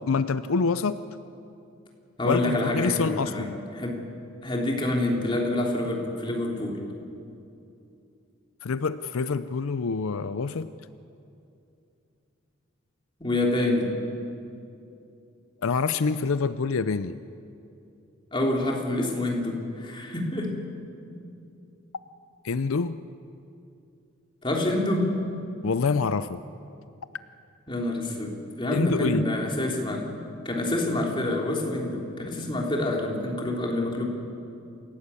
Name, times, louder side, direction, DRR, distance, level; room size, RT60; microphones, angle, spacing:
voice 1, 0.1-1.0 2.2-3.6 8.6-10.7 15.6-17.2 22.4-23.0 25.6-26.4 28.7-29.2, left 4 dB, 80° left, 13 dB, 0.6 m, -26 dB
voice 2, 2.2-3.5 3.7-4.0 4.4-6.8 13.2-13.9 18.3-20.6 24.4-25.1 27.7-34.1, left 1 dB, 25° left, 0 dB, 3.2 m, -27 dB
28.0 x 16.5 x 8.4 m, 2.7 s
head